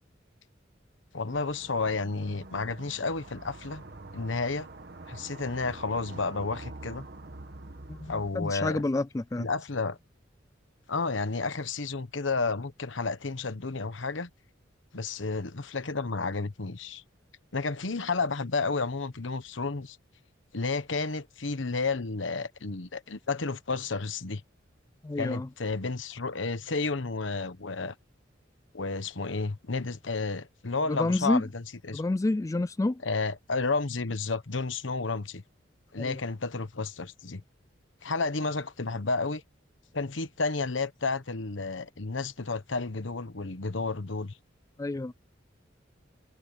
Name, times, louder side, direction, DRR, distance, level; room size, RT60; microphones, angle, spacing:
voice 1, 1.1-3.8 4.1-4.7 5.1-7.0 8.1-8.8 9.4-10.0 10.9-14.3 14.9-17.0 17.5-20.0 20.5-24.4 25.2-27.9 28.7-32.0 33.0-35.4 35.9-37.4 38.0-39.4 39.9-44.3, left 3 dB, 75° left, 1.2 m, -31 dB
sound 1, 1.3-8.3, right 2 dB, 55° right, 1.5 m, -46 dB
voice 2, 7.9-9.5 25.0-25.5 30.9-31.4 31.9-33.0 36.0-36.2 44.8-45.1, left 2 dB, 15° left, 0.3 m, -29 dB
head